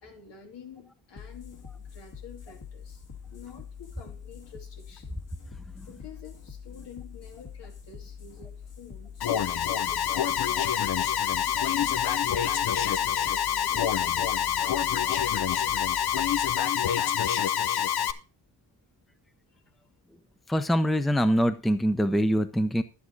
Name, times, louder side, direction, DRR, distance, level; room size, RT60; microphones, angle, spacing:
voice 1, 0.0-3.0 3.3-5.1 5.9-10.7 11.4-16.2 19.5-19.6, left 5 dB, 85° left, 2.6 m, -49 dB
sound 1, 1.2-18.2, left 7 dB, 50° left, 2.1 m, -45 dB
Alarm, 9.2-18.1, left 10 dB, 65° left, 0.8 m, -26 dB
voice 2, 20.5-22.8, equal, ahead, 0.6 m, -24 dB
11.0 x 8.6 x 3.9 m
wide cardioid pair, 140°, 41 cm